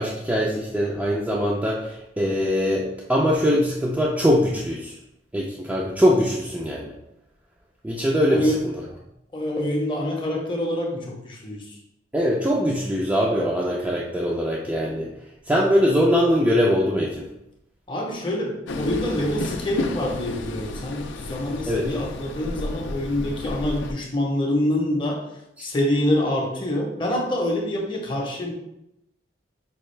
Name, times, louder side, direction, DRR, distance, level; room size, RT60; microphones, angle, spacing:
voice 1, 0.0-5.0 5.3-6.9 7.8-8.5 12.1-15.1 15.5-17.3 21.7-22.0 25.6-25.7, equal, 5° right, -5 dB, 0.4 m, -22 dB
voice 2, 8.3-8.6 9.3-11.8 17.9-25.3 25.6-28.5, left 1 dB, 25° left, 0 dB, 0.7 m, -26 dB
Train, 18.7-23.9, left 2 dB, 70° left, 0.4 m, -32 dB
5.3 x 2.3 x 3.2 m, 0.84 s
head